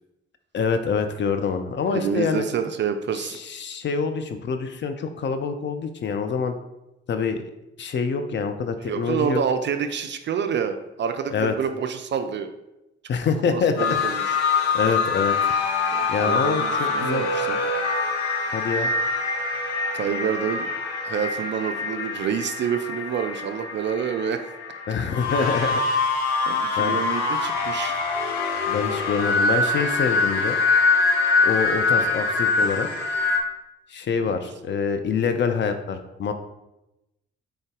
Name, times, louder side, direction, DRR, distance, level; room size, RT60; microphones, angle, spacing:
voice 1, 0.5-2.5 3.4-6.5 7.1-7.4 7.8-9.4 11.3-11.5 13.1-13.7 14.7-15.5 16.1-17.3 18.5-18.9 24.9-25.8 26.8-27.0 28.7-30.6 31.4-32.9 33.9-36.3, left 5 dB, 35° left, 7 dB, 0.5 m, -25 dB
voice 2, 1.9-3.4 8.9-12.5 13.4-14.4 15.9-17.6 19.9-20.7 21.0-24.5 26.5-28.0 34.2-34.4, right 7 dB, 35° right, 7 dB, 0.4 m, -28 dB
sound 1, 13.8-33.4, left 4 dB, 85° left, 0.5 m, -24 dB
3.9 x 3.4 x 3.6 m, 0.93 s
figure-of-eight pair, 40°, 32 cm